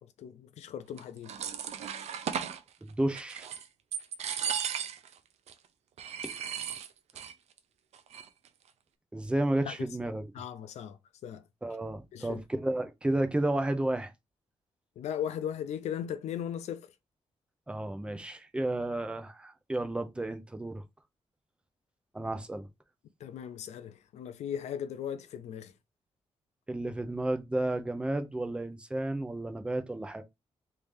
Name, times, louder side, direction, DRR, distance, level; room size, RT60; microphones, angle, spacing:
voice 1, 0.0-1.3 9.6-9.7 10.3-11.4 12.1-12.4 15.0-16.9 23.2-25.7, left 9 dB, 90° left, 0.5 m, -38 dB
sound 1, 1.0-2.6 3.1-3.7 3.9-5.1 5.5-5.6 6.0-7.3 7.6-7.7 7.9-8.5, right 8 dB, 75° right, 0.5 m, -36 dB
voice 2, 2.8-3.5 6.2-6.3 9.1-10.2 11.6-14.1 17.7-20.8 22.1-22.7 26.7-30.2, right 1 dB, 10° right, 0.5 m, -32 dB
3.3 x 2.6 x 3.4 m
wide cardioid pair, 135°, 11 cm